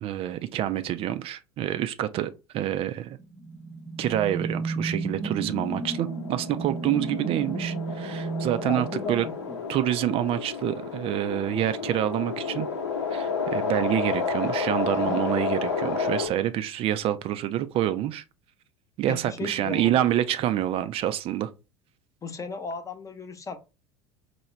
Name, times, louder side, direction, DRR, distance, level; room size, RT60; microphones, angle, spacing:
voice 1, 0.0-3.2 4.0-9.2 9.7-12.7 13.1-18.2 19.0-21.5, right 12 dB, 40° right, 0.5 m, -27 dB
sound 1, 3.2-9.7, right 3 dB, 20° right, 0.9 m, -33 dB
sound 2, 5.5-16.3, left 5 dB, 80° left, 0.9 m, -31 dB
voice 2, 8.6-9.6 14.9-15.2 19.1-20.1 22.2-23.6, left 4 dB, 20° left, 0.9 m, -35 dB
4.5 x 2.3 x 3.1 m
figure-of-eight pair, 75°, 14 cm